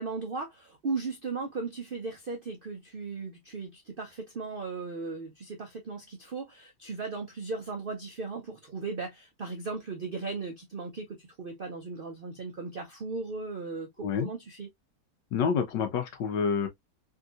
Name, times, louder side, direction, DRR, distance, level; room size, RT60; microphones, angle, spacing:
voice 1, 0.0-14.7, right 4 dB, 60° right, 0.5 m, -37 dB
voice 2, 15.3-16.7, left 6 dB, 85° left, 1.5 m, -28 dB
3.6 x 2.7 x 2.4 m
omnidirectional pair, 1.9 m